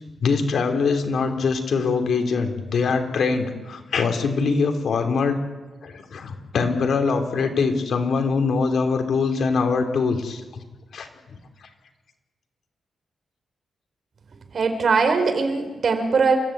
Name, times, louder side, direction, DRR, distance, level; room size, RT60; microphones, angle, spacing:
voice 1, 0.2-5.4 5.8-10.4 10.9-11.1, left 4 dB, 65° left, 5 dB, 3.0 m, -23 dB
voice 2, 14.5-16.4, right 4 dB, 50° right, 6 dB, 4.0 m, -20 dB
28.5 x 14.5 x 8.6 m, 1.2 s
cardioid pair, 115°, 0 cm